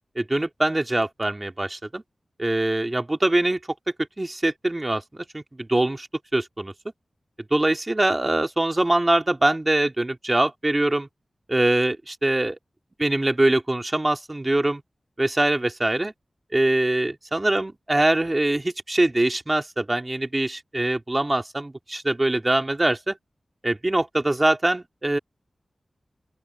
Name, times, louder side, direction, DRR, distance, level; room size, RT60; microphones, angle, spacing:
voice 1, 0.2-2.0 2.4-3.6 4.2-6.1 6.3-6.7 7.5-11.1 11.5-12.5 13.0-14.8 15.2-16.1 16.5-23.2 23.6-25.2, right 1 dB, 25° right, 2.5 m, -23 dB
open air
wide cardioid pair, 95°, 0 cm